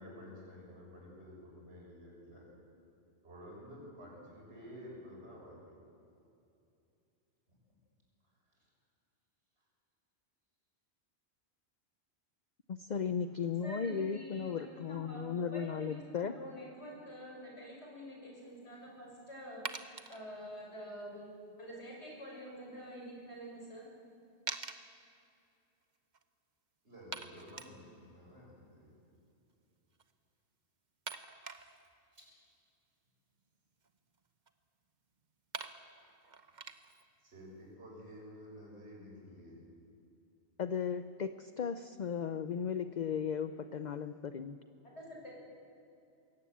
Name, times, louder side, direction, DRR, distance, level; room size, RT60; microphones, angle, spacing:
voice 1, 0.0-2.5 3.2-5.6 7.5-7.6 8.6-8.7 26.8-28.9 32.1-32.2 36.4-36.6 37.2-39.5, equal, 75° right, -3 dB, 7.1 m, -51 dB
voice 2, 12.7-16.3 40.6-44.6, left 7 dB, 50° left, 10 dB, 0.7 m, -36 dB
voice 3, 13.6-19.6 20.1-21.3 21.6-23.9 44.8-45.3, equal, 80° left, -2 dB, 6.9 m, -47 dB
sound 1, 18.5-18.6 19.7-20.2 23.3-23.4 23.6-23.7 24.5-24.8 25.8-25.9 26.1-26.2 27.1-27.8 29.9-30.1 31.1-31.9 33.4-34.5 35.2-35.3 35.5-37.1, right 5 dB, 45° right, 1.0 m, -44 dB
22.0 x 17.5 x 8.5 m, 2.7 s
omnidirectional pair, 1.1 m